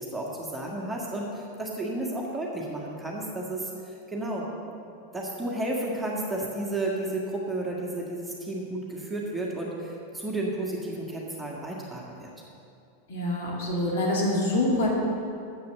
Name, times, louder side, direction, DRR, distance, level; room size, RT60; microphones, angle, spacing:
voice 1, 0.0-4.5 5.1-12.3, right 1 dB, 5° right, -3 dB, 1.6 m, -32 dB
voice 2, 13.1-14.9, left 1 dB, 55° left, -3 dB, 2.7 m, -25 dB
9.2 x 7.6 x 6.7 m, 2.6 s
figure-of-eight pair, 90°, 0 cm